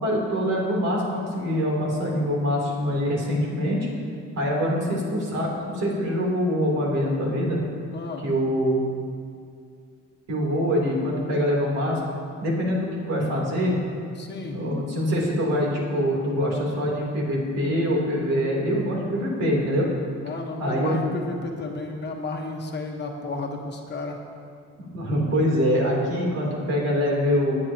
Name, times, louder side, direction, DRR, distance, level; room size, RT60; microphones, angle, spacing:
voice 1, 0.0-3.9 4.3-7.6 8.2-8.8 10.3-12.0 12.4-13.8 14.5-19.9 20.6-21.0 24.9-27.6, equal, 60° right, -2 dB, 3.2 m, -24 dB
voice 2, 4.6-5.0 7.9-8.2 14.1-14.6 20.2-24.2, left 3 dB, 35° left, 1 dB, 1.2 m, -33 dB
19.0 x 9.9 x 2.9 m, 2.3 s
cardioid pair, 145°, 30 cm